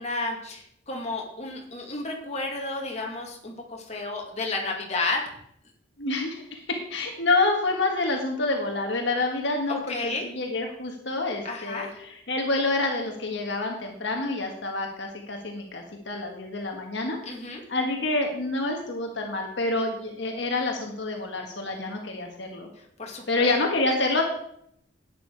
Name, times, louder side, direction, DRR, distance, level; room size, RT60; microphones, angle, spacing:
voice 1, 0.0-5.2 9.7-10.2 11.4-11.9 17.3-17.6 23.0-23.5, left 3 dB, 35° left, 0 dB, 2.2 m, -32 dB
voice 2, 6.0-17.2 17.7-22.7 23.3-24.2, left 2 dB, 65° left, 2 dB, 1.5 m, -27 dB
11.5 x 9.2 x 4.6 m, 0.71 s
head